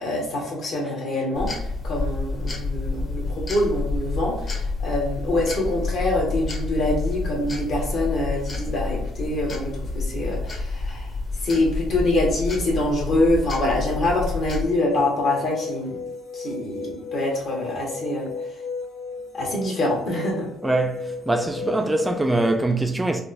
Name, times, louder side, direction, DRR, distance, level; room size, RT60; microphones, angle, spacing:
voice 1, 0.0-1.5 1.8-11.1 11.4-15.9 16.3-18.3 19.3-20.5, left 1 dB, 55° left, 1.4 m, -25 dB
sound 1, 1.3-14.7, left 3 dB, 35° left, 0.9 m, -29 dB
sound 2, 14.9-22.6, left 4 dB, 80° left, 0.9 m, -34 dB
voice 2, 20.6-23.2, right 2 dB, 10° right, 0.3 m, -23 dB
3.8 x 2.5 x 2.6 m
cardioid pair, 110°, 0 cm